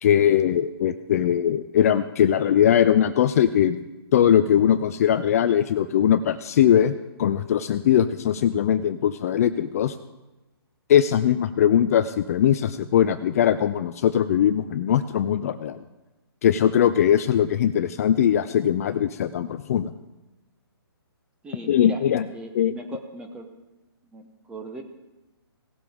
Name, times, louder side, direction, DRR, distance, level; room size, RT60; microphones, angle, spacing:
voice 1, 0.0-3.8 4.1-9.9 10.9-15.8 16.4-19.9 21.7-22.3 22.5-22.7, left 9 dB, 35° left, 11 dB, 0.4 m, -20 dB
voice 2, 21.4-22.0 22.3-23.5 24.1-24.8, right 1 dB, 5° right, 4 dB, 1.0 m, -38 dB
18.0 x 7.5 x 3.6 m, 1.0 s
hypercardioid pair, 150°, 13 cm